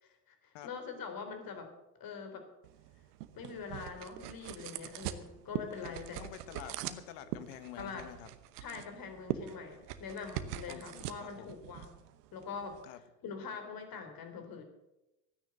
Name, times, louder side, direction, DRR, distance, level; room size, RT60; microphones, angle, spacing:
voice 1, 0.0-1.7 2.0-2.5 3.3-6.2 7.8-8.1 8.6-12.0 12.3-13.0 13.2-14.6, left 5 dB, 50° left, 7 dB, 3.7 m, -44 dB
sound 1, 2.6-12.8, right 12 dB, 80° right, 1.1 m, -43 dB
voice 2, 5.8-8.3 10.7-11.5 12.8-13.0, left 10 dB, 70° left, 12 dB, 1.6 m, -48 dB
13.0 x 9.8 x 7.8 m, 0.95 s
hypercardioid pair, 85°, 46 cm